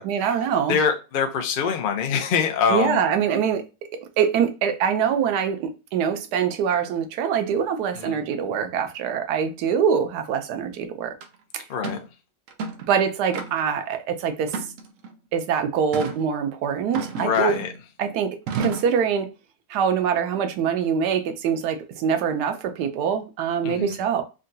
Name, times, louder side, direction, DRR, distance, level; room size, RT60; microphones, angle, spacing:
voice 1, 0.0-0.8 2.7-3.6 4.0-11.1 11.5-11.6 12.9-14.7 15.3-17.5 18.0-19.3 19.7-24.2, right 7 dB, 85° right, 1.1 m, -24 dB
voice 2, 0.7-3.0 7.9-8.2 11.7-12.0 17.2-17.7 23.6-24.0, left 6 dB, 65° left, 0.5 m, -24 dB
sound 1, 11.2-11.3 11.8-12.1 12.5-12.9 13.3-13.8 14.5-15.1 15.9-16.2 16.9-17.8 18.5-19.0, right 4 dB, 70° right, 0.8 m, -31 dB
3.7 x 2.2 x 2.6 m
omnidirectional pair, 1.7 m